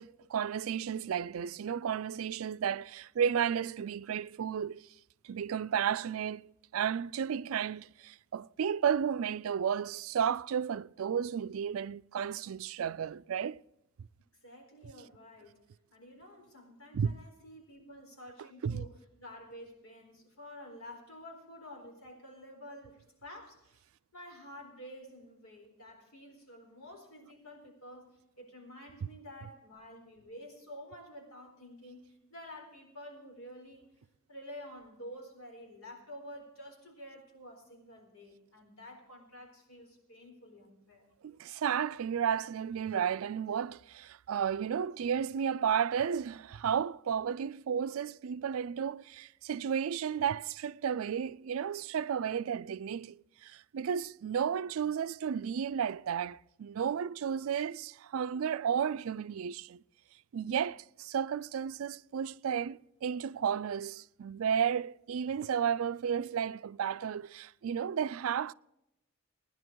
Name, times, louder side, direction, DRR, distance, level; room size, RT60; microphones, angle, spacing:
voice 1, 0.0-4.8 5.2-6.4 6.7-13.6 16.9-17.1 18.6-18.8 41.2-59.8 60.3-68.5, right 8 dB, 70° right, 0.4 m, -33 dB
voice 2, 14.4-15.6 15.9-23.8 24.1-33.8 34.3-41.1, equal, 70° left, 4.3 m, -50 dB
18.0 x 10.5 x 4.6 m
head